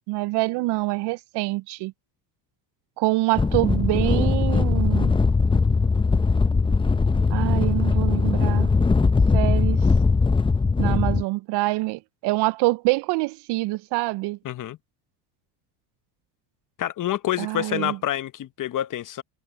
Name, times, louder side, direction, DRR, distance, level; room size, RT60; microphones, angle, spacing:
voice 1, 0.1-1.9 3.0-5.1 7.3-8.7 9.3-9.8 10.8-14.4 17.4-18.0, right 21 dB, 55° right, 0.6 m, -25 dB
sound 1, 3.4-11.2, left 4 dB, 10° left, 0.7 m, -20 dB
voice 2, 14.4-14.8 16.8-19.2, left 12 dB, 40° left, 1.1 m, -27 dB
supercardioid pair, 90°, 49 cm